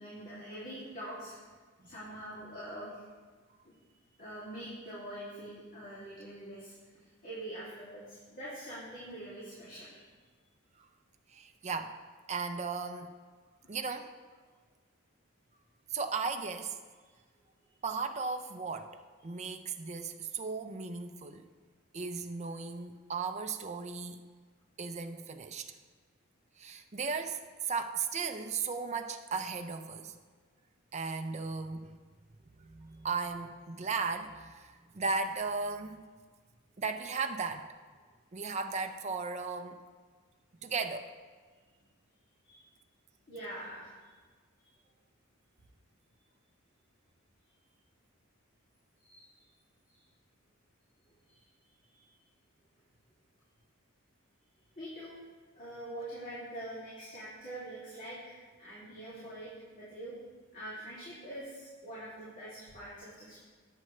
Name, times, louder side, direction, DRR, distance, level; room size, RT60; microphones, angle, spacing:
voice 1, 0.0-1.4 1.8-3.0 3.6-3.8 4.2-6.7 7.2-10.0 42.4-42.7 43.3-44.1 49.0-49.3 51.3-51.4 51.9-52.1 54.8-55.2 55.5-60.1 60.5-63.4, right 1 dB, 40° left, -9 dB, 2.6 m, -44 dB
voice 2, 11.3-11.9 12.3-13.1 13.7-14.1 15.9-16.8 17.8-21.5 21.9-24.2 24.8-25.7 26.6-30.2 30.9-32.0 32.6-36.1 36.8-37.7 38.3-39.8 40.6-41.1, right 4 dB, 30° right, 6 dB, 0.6 m, -36 dB
18.0 x 7.6 x 3.2 m, 1.5 s
head